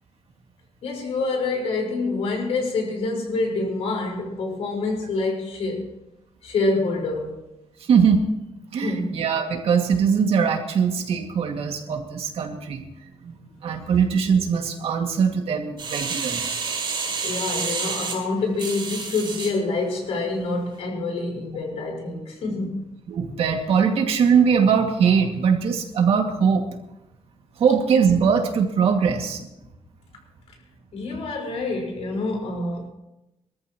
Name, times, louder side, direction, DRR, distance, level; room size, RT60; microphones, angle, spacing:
voice 1, 0.8-5.9 6.4-7.4 8.8-9.2 17.0-22.9 30.9-32.9, left 3 dB, 80° left, 4.8 m, -27 dB
voice 2, 7.8-8.3 8.7-12.8 13.2-13.4 13.6-16.5 23.1-26.6 27.6-29.4, right 6 dB, 70° right, 2.2 m, -21 dB
sound 1, 15.8-19.5 20.1-20.2, right 5 dB, 50° right, 4.5 m, -29 dB
24.5 x 13.5 x 3.1 m
wide cardioid pair, 160°, 10 cm